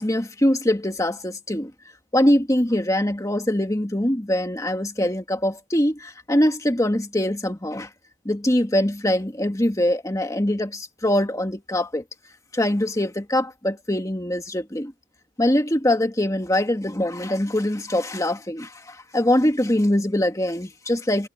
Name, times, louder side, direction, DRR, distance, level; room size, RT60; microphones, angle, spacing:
voice 1, 0.0-1.7 2.1-7.9 8.2-12.0 12.5-14.9 15.4-21.3, left 1 dB, 15° left, 1.7 m, -23 dB
head